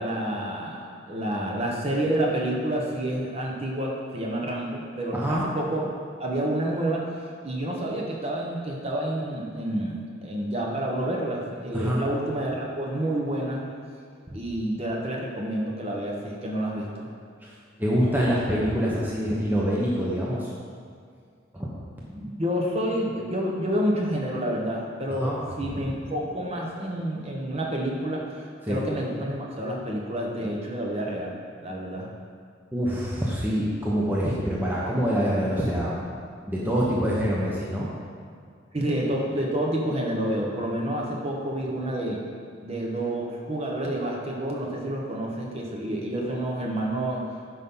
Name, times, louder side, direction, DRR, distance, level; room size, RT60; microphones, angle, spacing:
voice 1, 0.0-5.9 6.2-7.1 7.4-13.7 14.3-17.1 18.7-18.9 22.1-28.3 28.7-31.4 31.6-32.1 38.7-42.2 42.6-47.3, right 1 dB, 30° right, -1 dB, 1.1 m, -29 dB
voice 2, 5.1-5.5 11.7-12.0 14.3-14.4 17.4-17.5 17.8-20.5 21.5-21.7 25.1-25.4 25.7-25.8 28.6-28.8 32.7-36.0 36.5-37.9, equal, 10° right, -6 dB, 0.9 m, -25 dB
10.0 x 5.5 x 3.8 m, 2.1 s
head